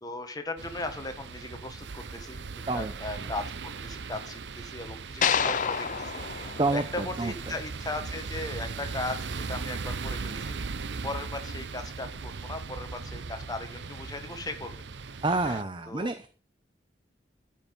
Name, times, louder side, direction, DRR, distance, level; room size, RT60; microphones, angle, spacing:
voice 1, 0.0-2.4 2.7-14.8 15.5-16.1, left 2 dB, 20° left, 7 dB, 1.5 m, -38 dB
sound 1, 0.6-15.6, right 4 dB, 80° right, 0.7 m, -38 dB
sound 2, 5.2-7.6, left 7 dB, 45° left, 0.6 m, -29 dB
voice 2, 7.2-7.5 15.2-16.3, right 2 dB, 30° right, 9 dB, 0.7 m, -28 dB
13.0 x 5.7 x 5.4 m, 0.37 s
head